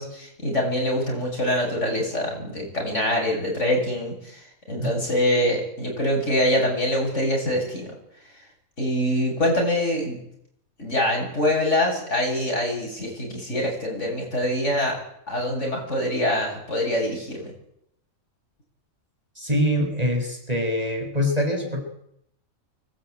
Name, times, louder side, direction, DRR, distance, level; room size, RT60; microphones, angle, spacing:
voice 1, 0.0-4.1 4.7-7.9 8.8-10.2 10.8-15.0 15.3-17.5, left 1 dB, 55° left, 0 dB, 8.4 m, -24 dB
voice 2, 19.4-21.8, equal, 25° right, 3 dB, 5.8 m, -24 dB
24.0 x 19.5 x 9.1 m, 0.73 s
omnidirectional pair, 1.5 m